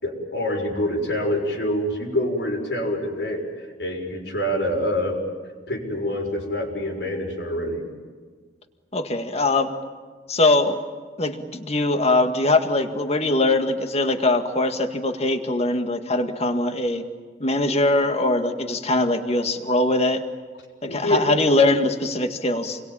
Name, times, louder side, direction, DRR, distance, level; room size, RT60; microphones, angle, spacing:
voice 1, 0.0-5.2 5.7-7.9 20.9-21.2, left 1 dB, 80° left, 0 dB, 6.3 m, -26 dB
voice 2, 8.9-9.7 10.3-10.8 11.2-17.0 17.4-20.2 20.8-22.8, left 2 dB, 35° left, 6 dB, 2.0 m, -22 dB
29.0 x 22.5 x 9.0 m, 1.5 s
head